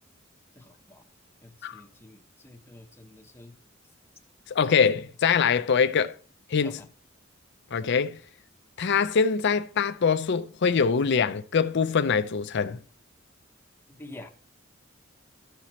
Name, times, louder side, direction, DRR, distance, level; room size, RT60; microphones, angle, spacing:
voice 1, 0.5-1.1 1.4-3.6 6.6-6.9 13.9-14.3, left 2 dB, 10° left, 0.9 m, -48 dB
voice 2, 4.5-6.2 6.5-6.8 7.7-8.2 8.8-12.8, left 6 dB, 60° left, 0.5 m, -23 dB
13.5 x 5.8 x 3.0 m
head